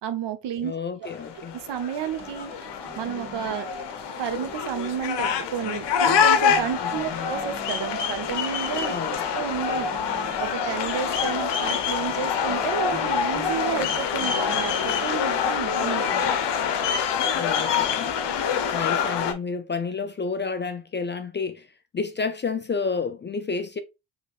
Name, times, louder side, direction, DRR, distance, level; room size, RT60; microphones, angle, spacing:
voice 1, 0.0-0.7 1.5-2.5 3.0-3.7 4.2-9.9 10.4-16.3, right 9 dB, 60° right, 0.9 m, -31 dB
voice 2, 0.6-1.6 6.8-7.3 8.9-9.2 17.3-18.1 18.7-21.7 21.9-23.8, left 4 dB, 25° left, 0.4 m, -30 dB
sound 1, 1.0-19.3, left 7 dB, 60° left, 0.8 m, -26 dB
sound 2, 2.2-15.1, right 3 dB, 25° right, 1.7 m, -45 dB
4.5 x 3.3 x 2.4 m
hypercardioid pair, 50°, 48 cm